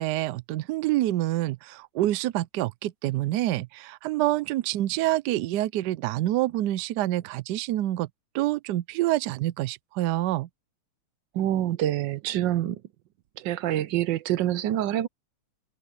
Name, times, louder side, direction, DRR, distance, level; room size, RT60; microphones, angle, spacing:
voice 1, 0.0-8.1 8.3-10.5, right 15 dB, 85° right, 0.9 m, -27 dB
voice 2, 11.3-12.8 13.4-15.1, right 12 dB, 70° right, 1.2 m, -26 dB
omnidirectional pair, 2.4 m